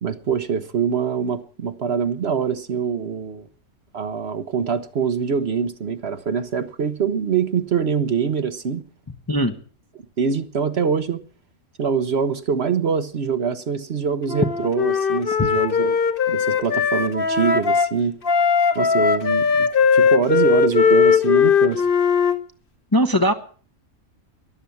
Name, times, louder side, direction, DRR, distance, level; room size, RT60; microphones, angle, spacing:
voice 1, 0.0-3.5 3.9-8.8 10.2-11.2 11.8-16.0 16.3-18.1 18.7-21.9, right 6 dB, 50° right, 1.0 m, -24 dB
Wind instrument woodwind instrument, 14.3-17.9 18.2-22.4, left 6 dB, 45° left, 1.2 m, -19 dB
voice 2, 22.9-23.3, equal, 20° left, 0.7 m, -18 dB
14.0 x 11.5 x 6.9 m
omnidirectional pair, 1.5 m